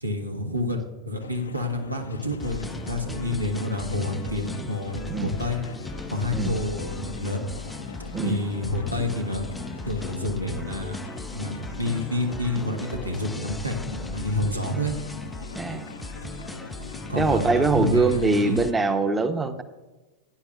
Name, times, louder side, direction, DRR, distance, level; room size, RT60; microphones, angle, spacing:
voice 1, 0.0-5.6 6.1-7.4 8.2-9.5 9.9-11.0 11.3-14.9 17.1-18.6, left 2 dB, 85° right, 4 dB, 1.3 m, -29 dB
sound 1, 1.2-18.8, left 4 dB, 70° left, 0.6 m, -41 dB
sound 2, 2.4-18.7, left 2 dB, 5° left, 0.3 m, -37 dB
voice 2, 15.5-15.9 17.2-19.6, right 3 dB, 15° right, 9 dB, 0.8 m, -23 dB
16.0 x 10.0 x 2.4 m, 1.2 s
figure-of-eight pair, 90°, 0 cm